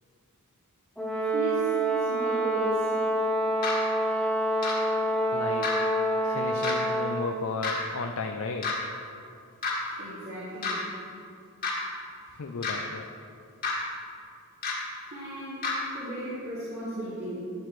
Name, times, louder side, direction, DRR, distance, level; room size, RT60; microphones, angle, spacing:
Brass instrument, 1.0-7.4, right 1 dB, 5° left, 1.0 m, -27 dB
voice 1, 1.3-2.9 4.1-4.2 10.0-10.9 15.1-17.5, equal, 45° right, -11 dB, 2.6 m, -36 dB
sound 1, 3.6-3.7 4.6-4.7 5.6-5.7 6.6-6.7 7.6-7.7 8.6-8.7 9.6-9.7 10.6-10.7 11.6-11.7 12.6-12.7 13.6-13.7 14.6-14.7 15.6-15.7, left 5 dB, 40° left, 1.8 m, -29 dB
voice 2, 5.3-5.7 6.2-8.7 12.3-13.1, left 4 dB, 65° left, 4 dB, 0.5 m, -34 dB
13.0 x 8.0 x 3.2 m, 2.4 s
head